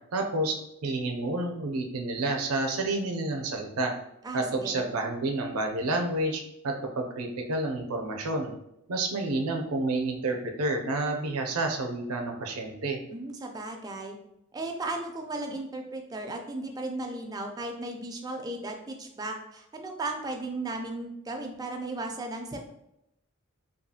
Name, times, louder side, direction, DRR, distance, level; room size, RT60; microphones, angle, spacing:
voice 1, 0.1-0.6 0.8-3.9 4.3-8.5 8.9-13.0, right 2 dB, 75° right, 3 dB, 0.4 m, -29 dB
voice 2, 4.2-4.8 13.1-14.2 14.5-22.6, right 2 dB, 15° right, 3 dB, 0.3 m, -35 dB
2.7 x 2.3 x 2.7 m, 0.82 s
head